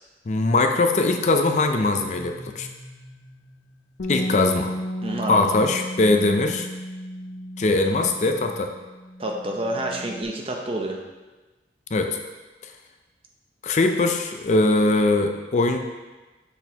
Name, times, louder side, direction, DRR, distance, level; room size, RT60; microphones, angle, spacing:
voice 1, 0.3-2.7 4.1-4.7 5.3-6.7 7.6-8.7 11.9-12.2 13.6-15.8, left 2 dB, 40° left, 5 dB, 0.4 m, -21 dB
sound 1, 1.8-4.6, left 1 dB, 10° right, 1.6 m, -46 dB
Bass guitar, 4.0-10.2, equal, 80° left, 0.7 m, -33 dB
voice 2, 5.0-5.5 9.2-11.0, right 1 dB, 30° right, 1 dB, 0.7 m, -28 dB
6.9 x 6.0 x 2.8 m, 1.2 s
head